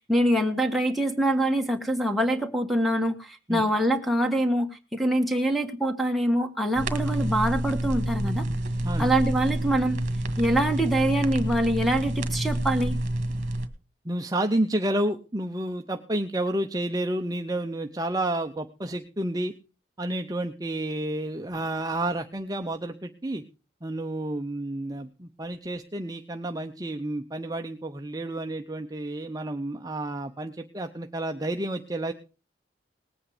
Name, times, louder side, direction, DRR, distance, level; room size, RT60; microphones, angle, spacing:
voice 1, 0.0-8.4 9.0-10.0 10.4-13.0, right 1 dB, ahead, 6 dB, 1.5 m, -24 dB
sound 1, 6.7-13.7, right 1 dB, 40° right, 1.7 m, -28 dB
voice 2, 14.0-19.5 20.0-23.4 23.8-32.1, right 1 dB, 20° right, 5 dB, 0.6 m, -30 dB
19.5 x 8.6 x 4.9 m, 0.34 s
head